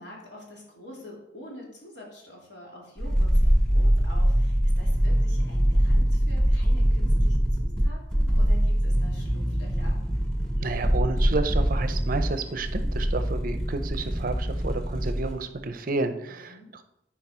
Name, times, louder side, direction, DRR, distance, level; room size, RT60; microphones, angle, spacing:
voice 1, 0.0-10.0 16.5-16.7, left 1 dB, 65° left, -2 dB, 2.5 m, -46 dB
sound 1, 3.0-15.4 15.6-15.7, equal, 5° left, 1.2 m, -23 dB
voice 2, 10.6-16.8, right 3 dB, 50° right, 9 dB, 0.6 m, -31 dB
9.6 x 4.7 x 4.4 m, 0.82 s
head